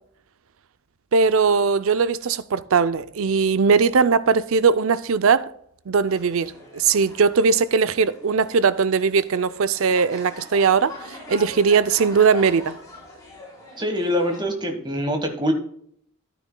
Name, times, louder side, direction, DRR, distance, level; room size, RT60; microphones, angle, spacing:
voice 1, 1.1-5.5 5.9-11.0 11.3-12.7, right 5 dB, 65° right, 0.5 m, -19 dB
sound 1, 6.1-14.5, left 2 dB, 15° left, 3.9 m, -42 dB
voice 2, 13.8-15.5, equal, 20° right, 1.4 m, -24 dB
13.0 x 9.4 x 2.2 m
head